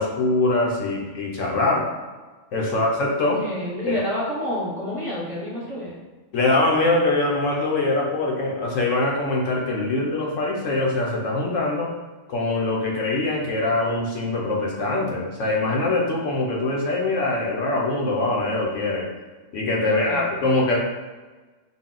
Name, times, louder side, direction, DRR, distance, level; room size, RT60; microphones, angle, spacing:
voice 1, 0.0-1.9 2.5-3.4 3.9-4.0 6.3-11.9 12.3-19.1 19.5-20.8, left 2 dB, 75° left, -2 dB, 1.1 m, -23 dB
voice 2, 3.4-6.0 19.8-20.4, equal, 30° right, -7 dB, 1.0 m, -29 dB
3.9 x 2.3 x 3.7 m, 1.3 s
omnidirectional pair, 1.3 m